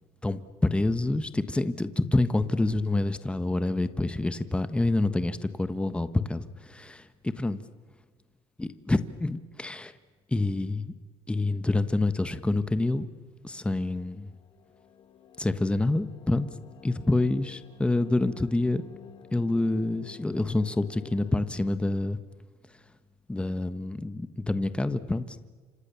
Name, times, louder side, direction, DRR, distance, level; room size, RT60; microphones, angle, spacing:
voice 1, 0.2-7.6 8.6-9.9 10.3-10.9 11.3-13.1 13.4-14.3 15.4-16.5 16.8-18.8 19.3-22.2 23.3-25.5, left 2 dB, 10° left, 11 dB, 1.4 m, -27 dB
sound 1, 13.9-21.5, left 8 dB, 45° left, 2.1 m, -52 dB
29.5 x 27.0 x 7.1 m, 1.5 s
supercardioid pair, 100°, 12 cm